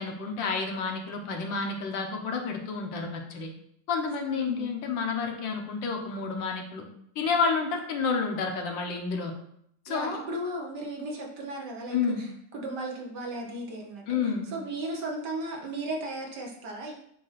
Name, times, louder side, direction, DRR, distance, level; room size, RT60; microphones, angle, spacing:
voice 1, 0.0-3.5 3.9-6.9 7.1-9.3 9.8-10.2 11.9-12.2 14.1-14.5, left 5 dB, 80° left, 3 dB, 1.7 m, -30 dB
voice 2, 4.3-4.7 9.9-14.2 14.5-16.9, right 1 dB, 65° right, 0 dB, 1.7 m, -35 dB
7.7 x 2.9 x 5.7 m, 0.71 s
omnidirectional pair, 2.0 m